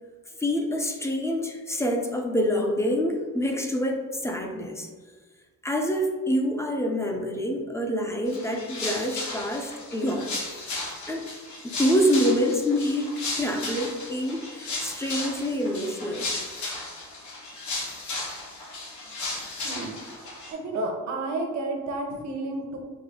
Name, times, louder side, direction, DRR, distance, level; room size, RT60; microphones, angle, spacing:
voice 1, 0.4-4.9 5.6-10.4 11.1-11.3 11.8-16.3, equal, 10° left, 2 dB, 0.5 m, -26 dB
sound 1, 8.3-20.5, left 2 dB, 70° left, 1.4 m, -35 dB
voice 2, 19.6-20.0 20.5-22.8, right 2 dB, 65° right, 2 dB, 0.9 m, -31 dB
5.1 x 2.2 x 3.6 m, 1.5 s
cardioid pair, 110°, 31 cm